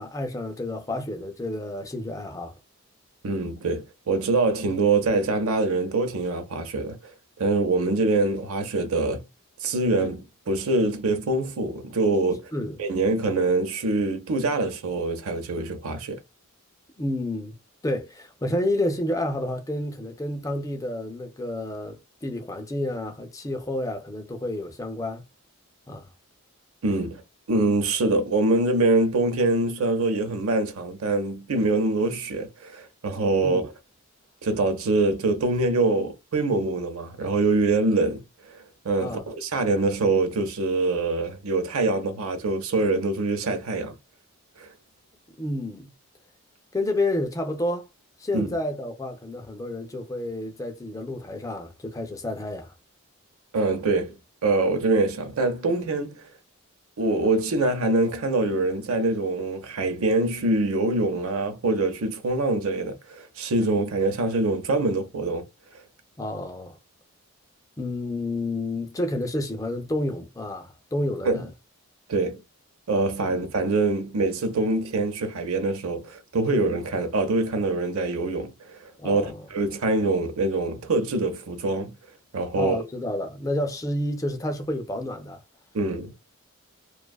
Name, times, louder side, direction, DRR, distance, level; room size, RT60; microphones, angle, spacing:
voice 1, 0.0-2.5 12.5-12.8 17.0-17.6 17.8-25.2 25.9-26.1 33.4-33.6 39.0-39.2 45.4-45.9 46.7-47.9 48.2-52.7 66.2-66.8 67.8-71.5 79.0-79.5 82.5-85.4, left 1 dB, 15° left, 0.3 m, -30 dB
voice 2, 3.2-7.1 7.4-9.3 9.6-12.5 12.8-16.2 26.8-27.2 27.5-33.7 34.4-43.9 44.6-44.7 48.3-48.5 53.5-54.2 54.4-56.3 57.0-65.4 71.2-71.5 72.1-72.4 72.9-81.9 82.3-82.9 85.7-86.1, right 2 dB, 70° right, 0.6 m, -24 dB
2.5 x 2.2 x 2.2 m
head